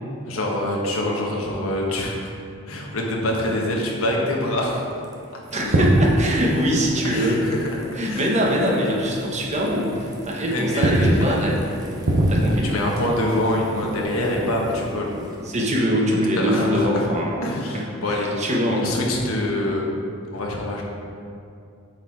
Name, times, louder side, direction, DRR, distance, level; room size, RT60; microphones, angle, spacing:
voice 1, 0.3-2.3 2.6-4.9 5.3-5.4 7.0-7.8 8.0-8.3 10.5-11.5 12.6-15.1 16.4-17.0 17.4-18.4 18.8-19.8 20.3-20.8, left 1 dB, 85° left, -1 dB, 1.2 m, -25 dB
sound 1, 4.8-15.7, right 1 dB, 20° right, 0.7 m, -40 dB
voice 2, 5.5-7.5 7.9-11.6 12.3-12.7 15.4-17.4 17.7-19.0, equal, 35° right, -2 dB, 1.1 m, -23 dB
sound 2, 5.5-8.5 8.7-9.0 9.5-10.3 10.6-14.8, right 1 dB, 70° right, 0.9 m, -24 dB
7.8 x 4.6 x 4.6 m, 2.4 s
head